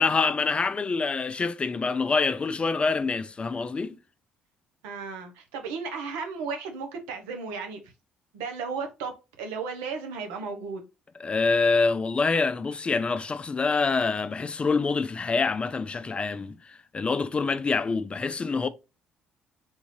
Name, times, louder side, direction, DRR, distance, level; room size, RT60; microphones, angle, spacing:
voice 1, 0.0-4.0 11.2-18.7, left 4 dB, 30° left, 0.4 m, -26 dB
voice 2, 4.8-7.8 8.3-10.8, right 5 dB, 85° right, 0.8 m, -34 dB
3.6 x 2.6 x 3.1 m
supercardioid pair, 65°, 4 cm